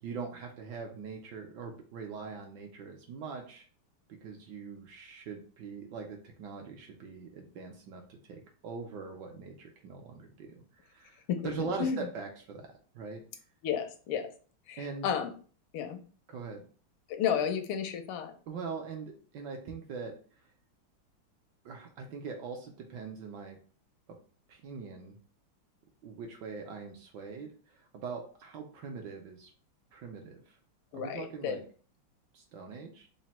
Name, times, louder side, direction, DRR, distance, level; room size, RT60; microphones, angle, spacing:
voice 1, 0.0-3.7 4.2-10.6 10.9-11.2 11.4-13.2 14.8-15.1 16.3-16.6 18.5-20.1 21.6-23.6 24.1-24.2 24.5-25.2 26.0-29.5 29.9-30.5 30.9-31.6 32.3-33.1, right 5 dB, 75° right, 3 dB, 1.1 m, -42 dB
voice 2, 11.3-12.1 13.6-14.3 14.7-15.3 15.7-16.0 17.1-18.3 30.9-31.6, left 8 dB, 85° left, 7 dB, 1.5 m, -32 dB
4.0 x 2.1 x 4.1 m, 0.41 s
omnidirectional pair, 2.4 m